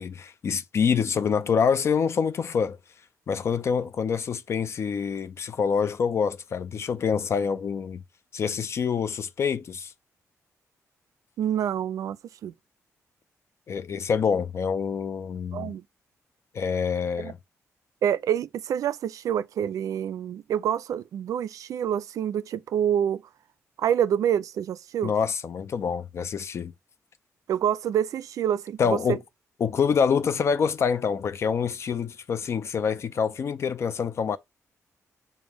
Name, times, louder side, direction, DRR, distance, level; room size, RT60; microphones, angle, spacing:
voice 1, 0.0-2.8 3.3-8.0 8.3-9.9 13.7-15.7 16.5-17.4 25.0-26.7 28.8-29.2 29.6-34.4, left 6 dB, 50° left, 0.4 m, -26 dB
voice 2, 11.4-12.5 15.5-15.8 17.2-17.3 18.0-23.2 23.8-25.1 27.5-29.2, right 9 dB, 75° right, 0.4 m, -27 dB
5.2 x 2.1 x 4.6 m
cardioid pair, 105°, 6 cm